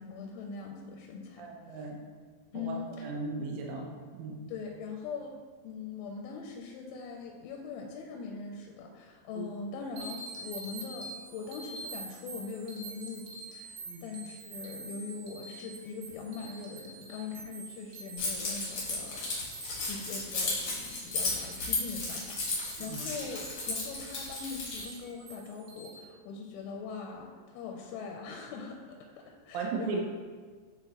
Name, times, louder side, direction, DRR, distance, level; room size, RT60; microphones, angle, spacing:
voice 1, 0.0-1.4 1.7-1.8 2.5-3.1 4.5-5.3 5.6-13.8 14.0-19.4 19.6-30.0, left 5 dB, 85° left, 1 dB, 2.8 m, -41 dB
voice 2, 1.4-2.0 2.5-3.9 4.2-4.4 9.4-9.5 13.9-14.0 22.8-23.0 29.5-30.0, right 4 dB, 90° right, 0 dB, 3.3 m, -36 dB
sound 1, 10.0-25.9, right 3 dB, 75° right, 2.9 m, -47 dB
Keys jangling, 18.2-24.9, left 3 dB, 70° left, 1.4 m, -34 dB
9.9 x 3.7 x 2.9 m, 1.5 s
omnidirectional pair, 5.5 m